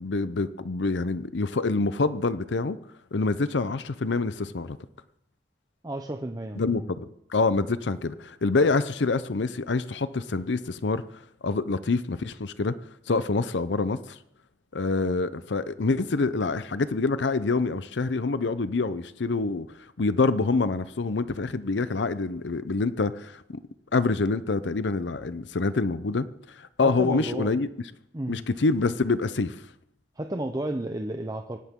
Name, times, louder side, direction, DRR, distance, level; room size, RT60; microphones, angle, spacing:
voice 1, 0.0-2.8 3.1-4.8 6.6-11.0 11.4-12.8 13.1-14.2 14.7-19.7 20.0-23.4 23.9-26.3 26.6-27.7 28.3-29.6, left 3 dB, 75° left, 14 dB, 0.7 m, -26 dB
voice 2, 5.8-6.9 26.8-27.5 28.1-28.5 30.2-31.6, right 1 dB, 20° right, 5 dB, 0.8 m, -32 dB
25.0 x 12.0 x 3.7 m, 0.75 s
head